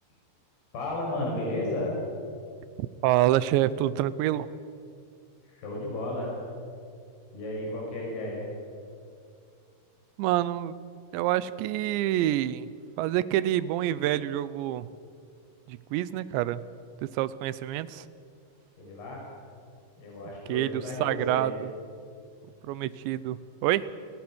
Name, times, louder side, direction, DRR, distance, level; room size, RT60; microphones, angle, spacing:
voice 1, 0.7-1.9 5.4-6.3 7.3-8.5 18.8-19.2 20.0-21.6, left 1 dB, 65° left, -3 dB, 8.0 m, -33 dB
voice 2, 3.0-4.5 10.2-10.8 11.1-12.7 13.0-14.9 15.7-16.6 17.0-18.1 20.5-21.5 22.6-23.9, right 13 dB, 90° right, 16 dB, 3.0 m, -27 dB
28.5 x 22.0 x 6.3 m, 2.3 s
omnidirectional pair, 5.0 m